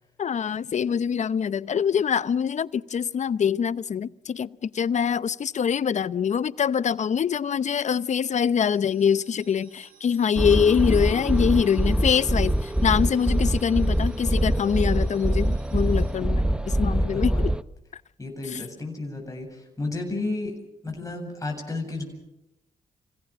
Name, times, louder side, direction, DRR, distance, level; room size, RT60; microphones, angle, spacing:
voice 1, 0.2-16.4 16.7-17.5, left 7 dB, 55° left, 0.7 m, -24 dB
sound 1, 8.7-16.1, right 5 dB, 80° right, 7.9 m, -55 dB
sound 2, 10.4-17.6, right 1 dB, 5° right, 0.9 m, -24 dB
voice 2, 16.2-16.6 16.9-17.4 18.2-20.5 20.8-22.0, left 2 dB, 20° left, 7.9 m, -33 dB
26.5 x 17.5 x 7.5 m
supercardioid pair, 50°, 15 cm